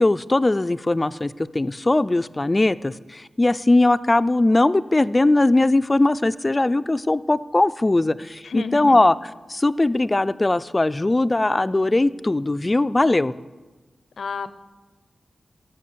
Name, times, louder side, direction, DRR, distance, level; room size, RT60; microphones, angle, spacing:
voice 1, 0.0-9.2 9.5-13.3, left 2 dB, 20° left, 16 dB, 0.3 m, -20 dB
voice 2, 8.4-9.1 14.2-14.5, left 5 dB, 75° left, 12 dB, 0.6 m, -30 dB
17.0 x 7.0 x 6.8 m, 1.3 s
wide cardioid pair, 155°, 0 cm